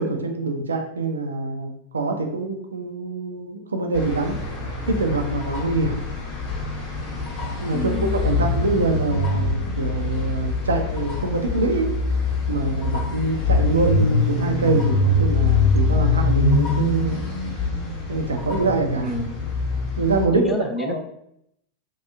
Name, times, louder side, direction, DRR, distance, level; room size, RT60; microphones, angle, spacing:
voice 1, 0.0-4.4 4.9-6.0 7.6-11.9 12.5-17.2 18.1-19.1 20.0-20.4 20.8-21.0, right 3 dB, 75° right, 4 dB, 0.4 m, -24 dB
sound 1, 3.9-20.3, left 3 dB, 35° left, 0.8 m, -24 dB
voice 2, 7.7-8.2 19.0-19.3 20.3-21.0, left 2 dB, 15° left, 7 dB, 0.3 m, -28 dB
2.7 x 2.3 x 2.3 m, 0.75 s
figure-of-eight pair, 90°, 0 cm